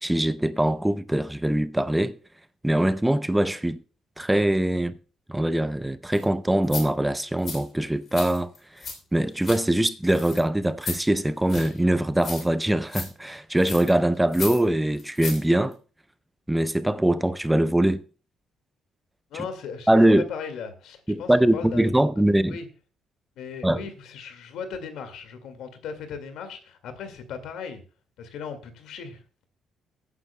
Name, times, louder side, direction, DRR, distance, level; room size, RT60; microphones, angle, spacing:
voice 1, 0.0-2.1 2.6-3.8 4.2-5.0 5.3-15.8 16.5-18.0 19.3-19.4 19.9-20.2 21.1-22.6 23.6-23.8, right 1 dB, 5° right, 0.5 m, -22 dB
sound 1, 6.1-6.2 6.6-6.8 7.4-7.6 8.1-9.0 9.2-9.6 10.1-10.4 10.8-11.0 11.5-11.8 12.2-12.6 12.9-13.1 13.6-13.9 14.3-14.6 15.0-15.4 15.7-15.8, left 5 dB, 45° left, 3.2 m, -35 dB
voice 2, 19.3-19.9 20.3-21.9 22.5-22.7 23.4-27.8 28.2-29.2, left 6 dB, 80° left, 2.0 m, -37 dB
20.5 x 9.5 x 2.2 m
cardioid pair, 115°, 0 cm